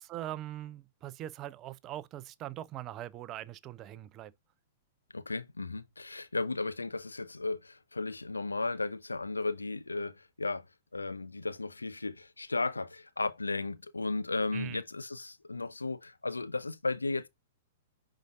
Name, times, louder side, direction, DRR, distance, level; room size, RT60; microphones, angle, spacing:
voice 1, 0.0-4.3 14.5-14.8, right 13 dB, 30° right, 0.6 m, -41 dB
voice 2, 5.1-10.6 10.9-17.3, left 3 dB, 80° left, 0.7 m, -35 dB
10.5 x 4.8 x 2.6 m
figure-of-eight pair, 105°, 0 cm